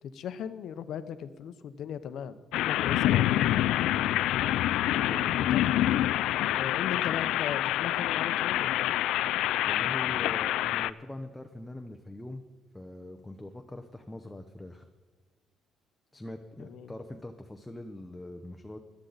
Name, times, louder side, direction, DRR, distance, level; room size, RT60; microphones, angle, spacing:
voice 1, 0.0-3.3 5.5-5.6 6.6-8.9 16.6-16.9, left 8 dB, 60° left, 12 dB, 0.7 m, -38 dB
sound 1, 2.5-10.9, left 13 dB, 90° left, 0.3 m, -27 dB
voice 2, 3.8-4.2 4.7-5.5 9.6-12.4 12.7-14.9 16.1-18.8, left 1 dB, 5° left, 5 dB, 0.6 m, -42 dB
18.0 x 11.5 x 4.0 m, 1.4 s
cardioid pair, 155°, 0 cm